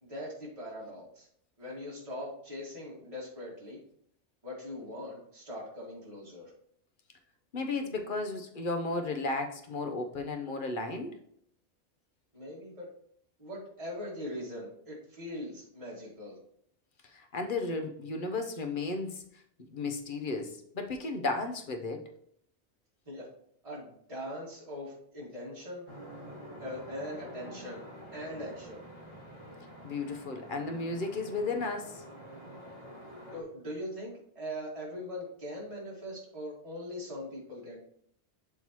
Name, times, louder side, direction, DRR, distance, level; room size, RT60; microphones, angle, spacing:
voice 1, 0.0-1.3 1.6-3.8 4.4-6.5 12.3-12.9 13.4-16.4 23.1-23.3 23.6-25.9 26.6-27.8 28.1-28.8 33.3-37.8, left 1 dB, 30° right, 2.2 m, -41 dB
voice 2, 7.5-11.2 17.1-19.2 19.7-22.0 29.8-32.0, left 3 dB, 50° left, 1.0 m, -34 dB
sound 1, 25.8-33.4, equal, 25° left, 2.1 m, -47 dB
11.5 x 3.9 x 3.0 m
omnidirectional pair, 1.2 m